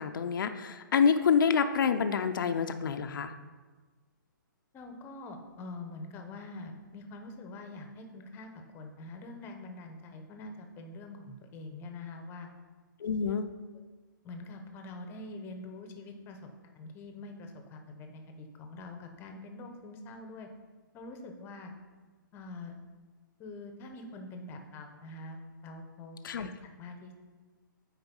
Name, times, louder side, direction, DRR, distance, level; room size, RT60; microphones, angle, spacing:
voice 1, 0.0-3.3 13.0-13.5 26.2-26.5, left 6 dB, 65° left, 7 dB, 0.6 m, -27 dB
voice 2, 4.7-12.5 14.2-20.5 20.9-21.7 22.3-22.8 23.4-26.5 26.8-27.1, left 2 dB, 20° left, 5 dB, 0.9 m, -45 dB
8.0 x 4.6 x 5.4 m, 1.3 s
hypercardioid pair, 145°, 11 cm